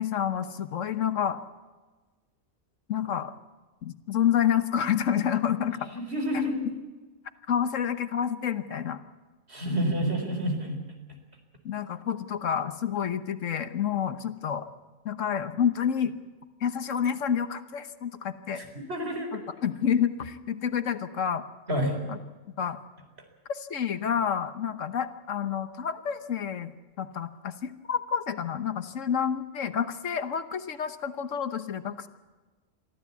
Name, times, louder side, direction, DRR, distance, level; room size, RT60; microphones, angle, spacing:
voice 1, 0.0-1.4 2.9-3.3 3.8-5.9 7.5-9.0 9.7-10.0 11.6-14.7 15.0-16.1 16.6-18.6 19.3-21.4 22.1-22.2 22.6-22.8 23.5-26.7 27.0-32.1, left 8 dB, 75° left, 11 dB, 1.4 m, -29 dB
voice 2, 5.8-6.7 9.5-10.8 18.5-19.4 21.7-22.0, equal, 55° right, 4 dB, 4.3 m, -29 dB
23.0 x 14.5 x 8.3 m, 1.3 s
omnidirectional pair, 1.3 m